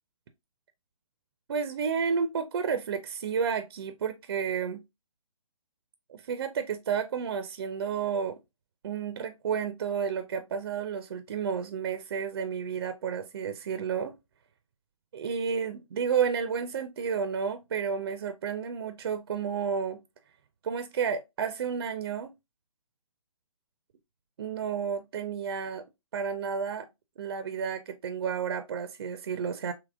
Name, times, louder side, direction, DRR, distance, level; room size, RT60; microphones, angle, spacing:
voice 1, 1.5-4.8 6.1-8.4 8.8-14.1 15.1-20.0 20.6-22.3 24.4-25.8 26.1-26.9 27.2-29.7, right 6 dB, 45° right, 0.4 m, -31 dB
3.4 x 2.9 x 2.3 m
figure-of-eight pair, 140°, 18 cm